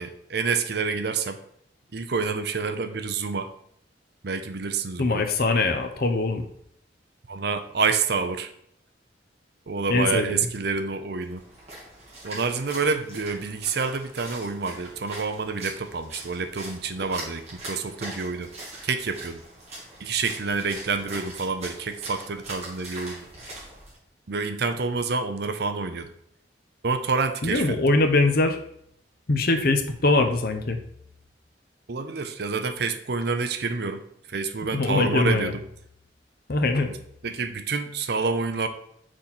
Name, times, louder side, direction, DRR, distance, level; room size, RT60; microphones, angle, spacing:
voice 1, 0.0-1.4 1.9-3.5 4.2-5.2 7.3-8.5 9.7-11.4 12.2-18.5 18.8-19.4 20.0-23.3 24.3-26.1 26.8-27.8 31.9-34.0 34.3-35.6 36.9-37.0 37.2-38.7, right 4 dB, 60° right, 9 dB, 0.7 m, -28 dB
voice 2, 5.0-6.5 9.9-10.5 27.4-28.6 29.3-30.8 34.7-35.5 36.5-36.9, left 3 dB, 55° left, 6 dB, 0.9 m, -22 dB
Splash splatter, 11.2-24.0, right 2 dB, 35° right, 2.9 m, -41 dB
6.2 x 4.2 x 6.0 m, 0.71 s
head